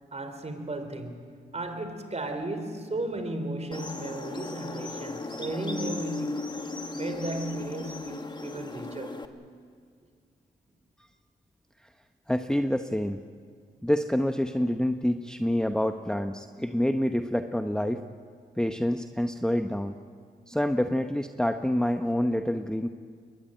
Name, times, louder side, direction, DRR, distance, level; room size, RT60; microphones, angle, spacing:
voice 1, 0.1-6.5 6.9-9.3, right 1 dB, 35° right, 3.9 m, -35 dB
sound 1, 3.7-9.3, left 2 dB, 25° left, 1.7 m, -36 dB
voice 2, 12.3-13.2 13.8-18.0 18.6-20.0 20.5-22.9, left 1 dB, 5° left, 0.9 m, -27 dB
22.0 x 20.0 x 9.2 m
cardioid pair, 60°, 19 cm